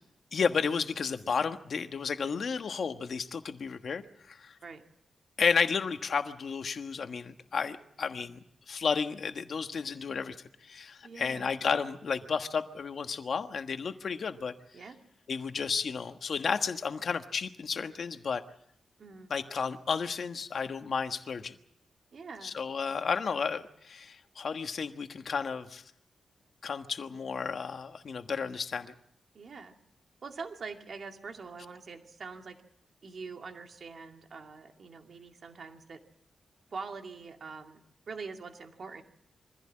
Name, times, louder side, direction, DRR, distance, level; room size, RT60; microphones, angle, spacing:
voice 1, 0.3-4.6 5.4-10.3 10.6-14.5 15.3-18.4 19.3-21.6 22.4-25.8 26.6-28.9, left 5 dB, 55° left, 7 dB, 1.4 m, -32 dB
voice 2, 11.0-11.5 14.7-15.0 19.0-19.3 22.1-22.6 29.3-29.8 30.2-32.6 33.0-36.0 36.7-37.8 38.1-39.0, right 4 dB, 50° right, 4 dB, 2.4 m, -44 dB
24.0 x 15.5 x 8.7 m, 0.76 s
wide cardioid pair, 150°, 0 cm